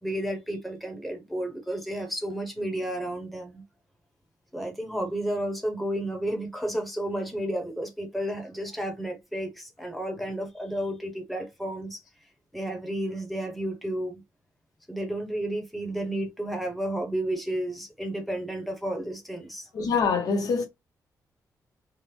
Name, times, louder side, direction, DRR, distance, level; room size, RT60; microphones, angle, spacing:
voice 1, 0.0-3.6 4.5-12.0 12.5-14.2 14.9-19.7, right 1 dB, ahead, 0.9 m, -32 dB
voice 2, 19.7-20.6, left 5 dB, 70° left, 0.8 m, -24 dB
3.4 x 2.0 x 3.1 m
wide cardioid pair, 155°, 7 cm